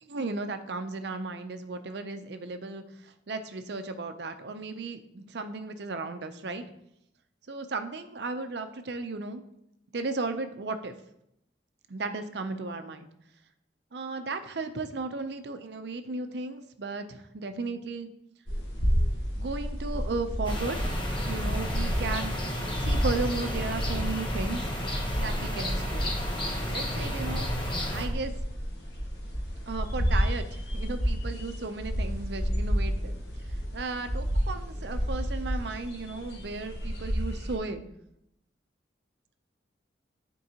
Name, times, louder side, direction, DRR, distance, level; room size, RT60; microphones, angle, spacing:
voice 1, 0.0-6.6 7.5-9.4 9.9-10.9 11.9-13.1 13.9-18.1 19.4-20.9 21.2-22.4 22.8-24.6 25.2-26.1 26.7-28.3 29.7-33.2 33.7-37.8, right 3 dB, 65° right, 8 dB, 0.6 m, -35 dB
sound 1, 18.5-37.6, equal, 75° left, 1.8 m, -31 dB
sound 2, 20.4-28.1, equal, 25° left, 0.9 m, -32 dB
9.3 x 4.5 x 2.9 m, 0.78 s
head